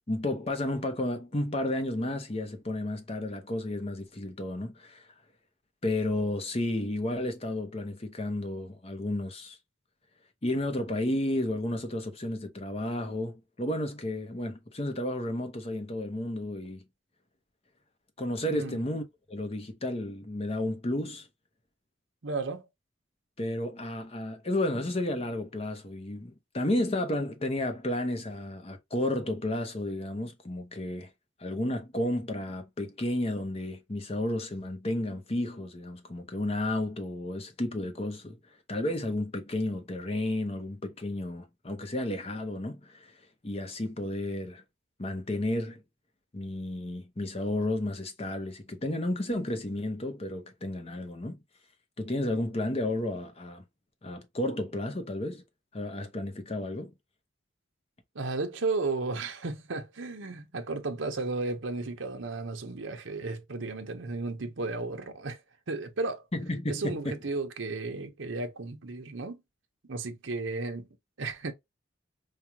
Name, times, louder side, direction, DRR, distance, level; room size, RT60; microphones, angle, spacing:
voice 1, 0.1-5.1 5.8-9.6 10.4-16.8 18.2-21.3 23.4-31.1 31.4-38.4 38.7-44.6 45.0-45.8 46.3-51.4 52.0-53.6 54.0-55.4 55.7-56.9 66.3-67.2, left 1 dB, 30° left, 0.8 m, -32 dB
voice 2, 18.5-18.8 22.2-22.7 58.1-65.4 65.7-66.2 66.7-69.4 69.9-70.9 71.2-71.5, right 3 dB, 75° right, 0.8 m, -34 dB
4.9 x 2.3 x 2.8 m
head